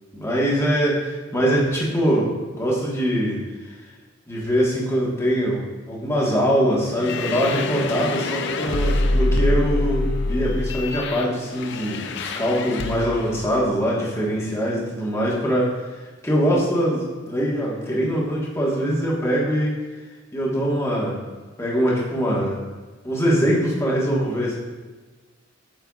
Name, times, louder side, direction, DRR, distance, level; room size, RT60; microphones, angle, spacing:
voice 1, 0.1-3.4 4.3-19.8 20.3-21.2 21.6-22.6 23.0-24.6, equal, 15° left, -5 dB, 1.4 m, -23 dB
sound 1, 6.9-13.4, left 2 dB, 65° left, 0.5 m, -25 dB
8.3 x 5.6 x 2.4 m, 1.3 s
head